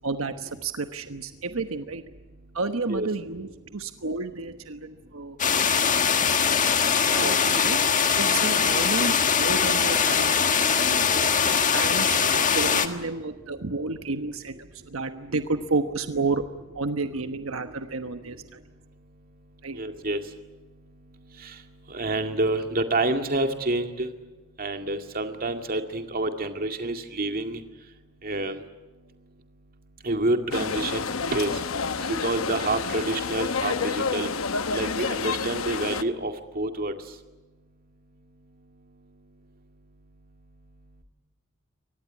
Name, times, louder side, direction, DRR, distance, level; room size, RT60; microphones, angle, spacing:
voice 1, 0.0-2.0 2.5-5.4 5.7-6.5 7.0-7.8 8.2-11.1 11.4-16.4 16.7-18.6 19.6-19.8, right 3 dB, 85° right, 8 dB, 1.2 m, -31 dB
voice 2, 5.1-7.4 10.6-11.7 18.6-24.1 24.6-28.6 29.0-29.3 30.0-34.3 34.7-37.2 38.7-39.2, right 2 dB, 45° right, 6 dB, 2.2 m, -30 dB
sound 1, 5.4-12.9, left 6 dB, 40° left, 1.6 m, -22 dB
sound 2, 30.5-36.0, left 5 dB, 90° left, 1.0 m, -29 dB
24.0 x 19.0 x 9.7 m, 1.2 s
head